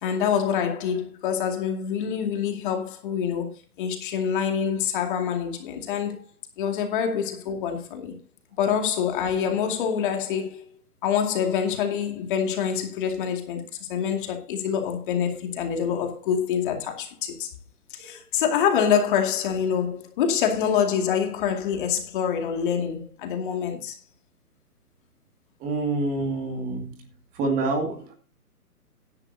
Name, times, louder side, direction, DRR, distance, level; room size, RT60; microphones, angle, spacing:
voice 1, 0.0-3.5 3.8-6.3 6.6-8.1 8.6-10.7 11.0-17.5 17.9-24.0, left 7 dB, 35° left, 2.4 m, -26 dB
voice 2, 25.6-27.0 27.3-28.1, right 3 dB, 20° right, 2.3 m, -27 dB
15.0 x 11.0 x 2.8 m
figure-of-eight pair, 140°, 46 cm